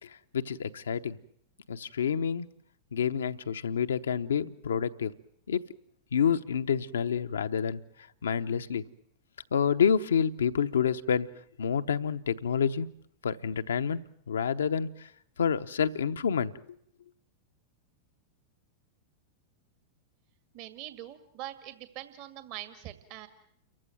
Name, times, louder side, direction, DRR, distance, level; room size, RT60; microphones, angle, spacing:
voice 1, 0.0-1.2 1.7-2.5 2.9-5.1 5.5-5.6 6.1-7.8 8.2-8.8 9.5-11.3 11.6-12.9 13.2-15.1 15.4-16.5, left 7 dB, 80° left, 9 dB, 0.9 m, -28 dB
voice 2, 20.5-23.3, right 13 dB, 50° right, 10 dB, 1.9 m, -43 dB
29.0 x 15.0 x 9.2 m, 0.69 s
hypercardioid pair, 100°, 0 cm